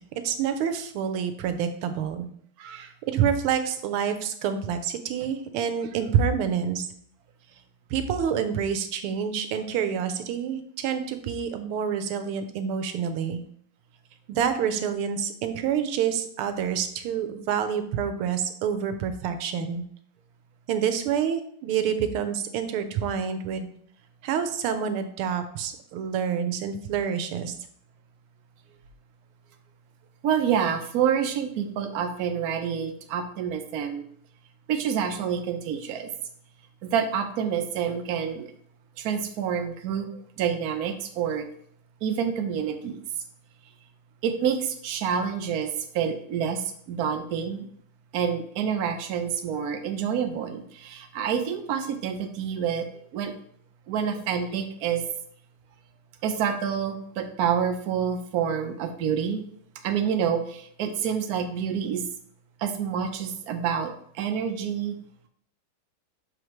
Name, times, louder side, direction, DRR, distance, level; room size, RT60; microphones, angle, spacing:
voice 1, 0.2-2.3 3.1-6.9 7.9-13.4 14.3-19.8 20.7-23.7 24.2-27.5, right 7 dB, 85° right, 8 dB, 1.6 m, -27 dB
voice 2, 2.6-2.9 30.2-34.0 34.7-36.1 36.8-38.5 39.0-40.1 40.4-41.5 42.0-43.0 44.2-47.7 48.1-53.3 53.9-55.0 56.2-59.4 59.8-62.0 62.6-65.0, right 7 dB, 70° right, 5 dB, 0.9 m, -28 dB
6.7 x 5.0 x 3.1 m, 0.64 s
omnidirectional pair, 2.4 m